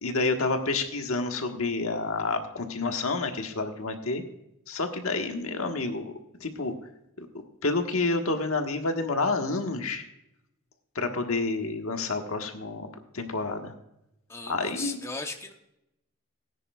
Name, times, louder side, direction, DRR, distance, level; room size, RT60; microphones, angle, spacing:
voice 1, 0.0-4.2 4.7-6.1 6.4-6.7 7.6-10.0 10.9-13.7 14.5-15.0, left 3 dB, 80° left, 5 dB, 1.4 m, -29 dB
voice 2, 14.3-15.5, left 3 dB, 15° left, 4 dB, 0.8 m, -37 dB
18.5 x 9.9 x 2.3 m, 0.84 s
head